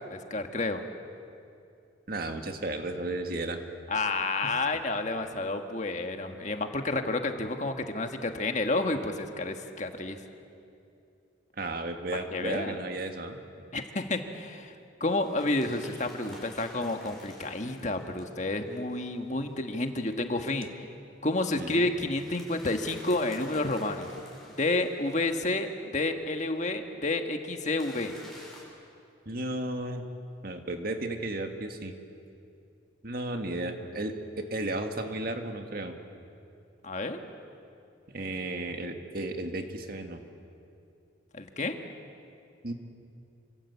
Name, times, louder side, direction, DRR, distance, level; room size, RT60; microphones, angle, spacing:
voice 1, 0.1-0.8 3.9-10.2 12.3-12.7 13.7-14.7 15.0-20.8 21.2-24.1 24.6-28.1 36.8-37.2 41.3-41.8, left 2 dB, 40° left, 5 dB, 1.6 m, -30 dB
voice 2, 2.1-3.6 4.4-4.5 11.6-13.4 21.6-21.9 29.3-30.0 30.4-31.9 33.0-35.9 38.1-40.2 42.6-42.7, right 2 dB, 50° right, 5 dB, 2.0 m, -34 dB
sound 1, 15.2-19.6 22.0-25.3 27.8-28.6, left 1 dB, ahead, 6.5 m, -51 dB
27.0 x 25.5 x 8.3 m, 2.6 s
head